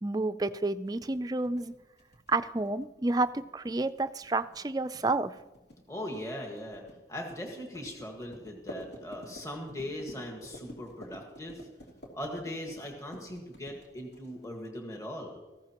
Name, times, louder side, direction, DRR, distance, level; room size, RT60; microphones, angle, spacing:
voice 1, 0.0-1.7 2.3-5.3, right 2 dB, 20° right, 12 dB, 0.4 m, -30 dB
sound 1, 0.9-14.6, equal, 60° left, 2.8 m, -50 dB
voice 2, 5.9-6.8 7.1-11.7 12.1-15.4, left 1 dB, 15° left, 1 dB, 1.7 m, -40 dB
18.0 x 15.0 x 3.0 m, 1.2 s
head